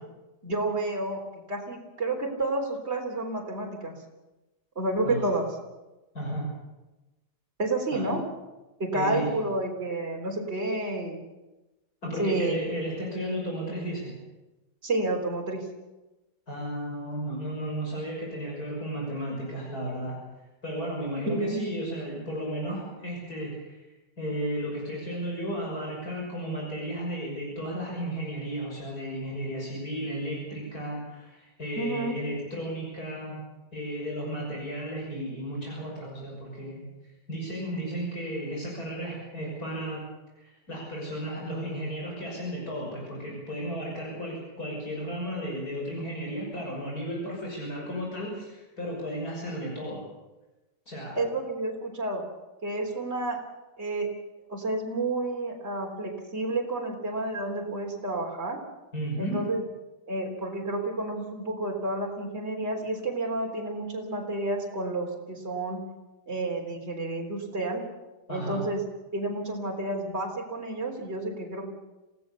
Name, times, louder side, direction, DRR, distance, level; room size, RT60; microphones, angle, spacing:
voice 1, 0.4-1.2 1.5-3.9 4.8-5.4 7.6-8.2 8.8-11.2 12.2-12.6 14.8-15.7 21.3-21.6 31.8-32.2 51.2-52.2 52.6-53.4 53.8-54.1 54.5-58.6 59.2-59.6 60.1-65.8 66.3-67.8 68.3-68.8 69.1-71.7, right 2 dB, 35° right, 0 dB, 4.0 m, -30 dB
voice 2, 6.1-6.5 7.9-8.1 8.9-9.4 12.0-14.1 16.5-20.2 20.6-23.8 24.2-33.4 33.7-36.8 37.3-40.0 40.4-50.0 50.9-51.2 58.9-59.4 68.3-68.6, equal, 55° left, -2 dB, 6.7 m, -34 dB
28.0 x 17.5 x 7.0 m, 1.1 s
omnidirectional pair, 1.9 m